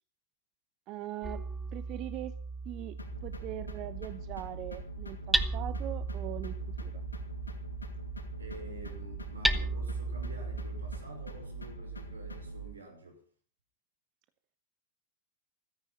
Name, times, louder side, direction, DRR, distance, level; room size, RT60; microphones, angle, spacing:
voice 1, 0.9-1.4 1.7-2.3 2.6-7.0, right 14 dB, 45° right, 1.0 m, -41 dB
Hammer, 1.2-11.0, right 2 dB, 5° right, 1.3 m, -36 dB
sound 1, 3.0-12.7, right 3 dB, 90° left, 2.6 m, -43 dB
voice 2, 8.4-13.2, right 2 dB, 80° right, 5.8 m, -49 dB
15.5 x 14.0 x 5.8 m
figure-of-eight pair, 95°, 0 cm